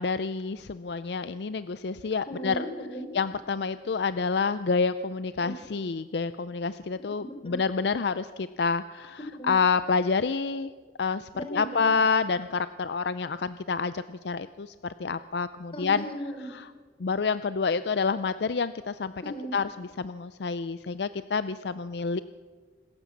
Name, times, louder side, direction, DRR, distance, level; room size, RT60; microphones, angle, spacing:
voice 1, 0.0-2.7 3.1-9.2 9.4-10.7 11.0-16.0 16.5-16.7 17.0-19.1 19.5-22.2, left 5 dB, 65° left, 14 dB, 0.5 m, -28 dB
voice 2, 2.3-3.1 5.4-5.5 7.4-7.6 9.4-9.5 11.3-12.0 15.7-16.5 19.2-19.5, equal, 30° left, 4 dB, 3.8 m, -36 dB
26.0 x 14.0 x 7.3 m, 1.5 s
head